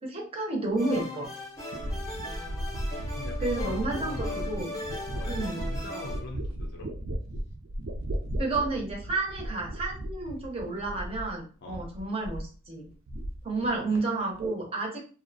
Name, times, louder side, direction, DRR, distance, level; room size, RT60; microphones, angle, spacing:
voice 1, 0.0-1.3 3.4-4.8 5.3-5.7 8.4-12.9 13.4-15.0, right 2 dB, 30° right, 0 dB, 0.6 m, -31 dB
sound 1, 0.8-6.2, left 2 dB, 15° left, 0.7 m, -38 dB
sound 2, 1.7-11.4 11.7-12.5 12.8-13.7 13.9-14.5, right 1 dB, 75° right, 0.4 m, -35 dB
voice 2, 3.1-4.5 5.1-6.9 11.6-11.8 13.5-14.1, left 2 dB, 60° left, 0 dB, 0.5 m, -44 dB
2.6 x 2.0 x 2.6 m, 0.37 s
head